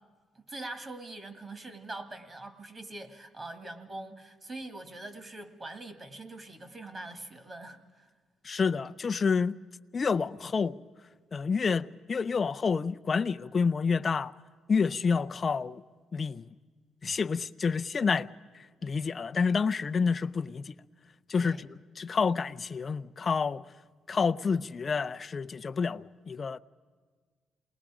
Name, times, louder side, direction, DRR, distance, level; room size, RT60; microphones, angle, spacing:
voice 1, 0.4-8.1 21.4-21.6, right 2 dB, 30° right, 2.1 m, -43 dB
voice 2, 8.4-9.6 9.9-10.8 11.3-14.3 14.7-15.8 16.1-16.5 17.0-18.3 18.8-20.8 21.3-23.6 24.1-26.6, left 5 dB, 40° left, 0.5 m, -28 dB
28.5 x 20.0 x 5.0 m
cardioid pair, 90°, 0 cm